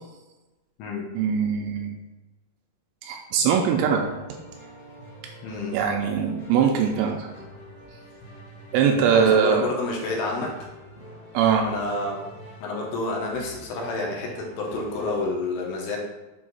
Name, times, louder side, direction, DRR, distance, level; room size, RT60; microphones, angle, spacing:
voice 1, 1.2-2.0 3.0-4.1 5.7-7.3 8.7-9.6 11.3-11.7, right 7 dB, 85° right, 2 dB, 2.8 m, -21 dB
sound 1, 3.7-15.2, equal, 60° left, 2.1 m, -45 dB
voice 2, 5.4-5.8 9.1-10.7 11.6-12.2 12.6-16.0, left 2 dB, 75° left, -1 dB, 3.1 m, -29 dB
7.9 x 2.8 x 5.5 m, 1.1 s
omnidirectional pair, 5.7 m